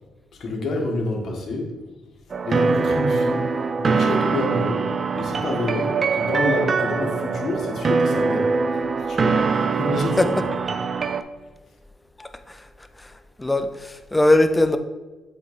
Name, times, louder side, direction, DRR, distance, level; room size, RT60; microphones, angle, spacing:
voice 1, 0.3-1.7 2.4-3.5 3.8-8.6 9.0-10.8, left 2 dB, 60° left, 0 dB, 1.6 m, -28 dB
sound 1, 2.3-11.2, right 4 dB, 40° right, 0.4 m, -23 dB
voice 2, 12.2-12.6 13.4-14.8, left 1 dB, 10° left, 9 dB, 0.5 m, -20 dB
7.8 x 3.2 x 4.1 m, 1.2 s
cardioid pair, 90°, 0 cm